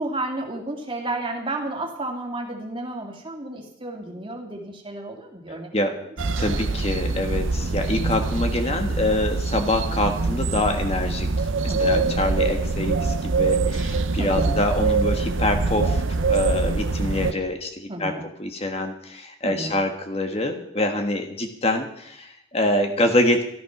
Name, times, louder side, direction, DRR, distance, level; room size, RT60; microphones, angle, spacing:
voice 1, 0.0-6.1 6.5-6.6 11.7-12.1 14.0-14.6 17.9-18.3 19.4-19.8, right 2 dB, 25° right, 1 dB, 2.6 m, -32 dB
voice 2, 5.5-5.9 6.4-18.1 18.4-23.4, left 1 dB, 30° left, 5 dB, 1.5 m, -25 dB
sound 1, 6.2-17.3, right 3 dB, 80° right, 0.8 m, -24 dB
14.0 x 13.5 x 6.0 m, 0.76 s
head